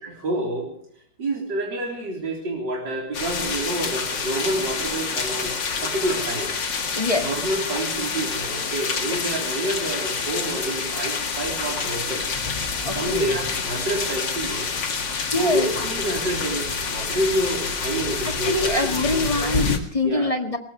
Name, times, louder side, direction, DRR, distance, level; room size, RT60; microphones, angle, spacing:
voice 1, 0.0-0.7 1.2-5.6 5.8-6.5 7.2-12.2 12.9-14.7 15.3-19.4 20.0-20.3, right 1 dB, 70° right, -1 dB, 4.3 m, -28 dB
sound 1, 3.1-19.8, left 5 dB, 75° left, 2.7 m, -27 dB
voice 2, 7.0-7.3 12.9-13.3 15.3-15.7 18.5-20.6, left 2 dB, 20° left, 5 dB, 1.8 m, -24 dB
22.0 x 19.0 x 3.2 m, 0.64 s
omnidirectional pair, 2.0 m